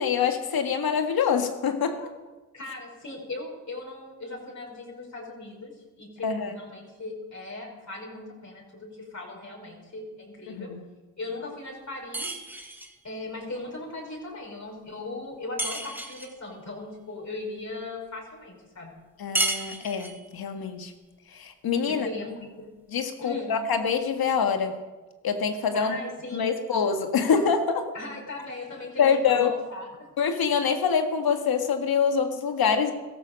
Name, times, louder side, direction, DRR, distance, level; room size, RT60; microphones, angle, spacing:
voice 1, 0.0-2.1 6.2-6.6 10.5-10.8 19.2-20.9 21.3-22.1 22.9-24.8 25.2-26.0 26.3-27.9 29.0-29.5 30.2-32.9, left 6 dB, 70° left, 6 dB, 1.8 m, -25 dB
voice 2, 2.5-5.7 6.0-10.7 11.2-12.4 13.0-19.0 21.8-22.7 23.2-23.5 25.7-26.5 27.9-29.9, left 2 dB, 45° left, -3 dB, 5.3 m, -38 dB
sound 1, 12.1-13.0 15.6-16.4 19.3-20.3, right 1 dB, 5° right, 2.0 m, -31 dB
16.0 x 13.5 x 5.3 m, 1.2 s
supercardioid pair, 50°, 38 cm